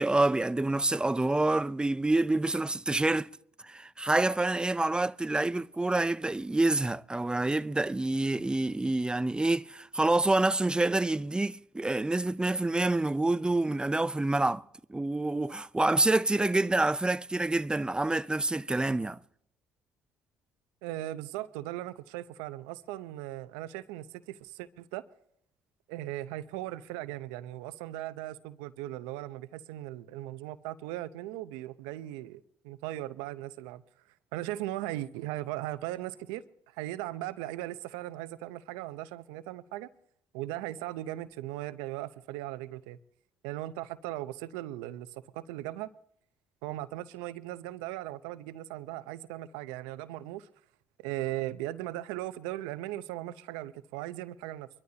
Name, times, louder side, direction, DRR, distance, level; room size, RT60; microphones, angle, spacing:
voice 1, 0.0-3.3 3.6-19.2, right 2 dB, 10° right, 0.5 m, -27 dB
voice 2, 20.8-25.0 25.9-33.8 34.3-36.4 36.7-39.9 40.3-43.0 43.4-45.9 46.6-50.5 51.0-54.7, right 15 dB, 85° right, 0.7 m, -38 dB
24.0 x 13.0 x 2.9 m
hypercardioid pair, 65°, 7 cm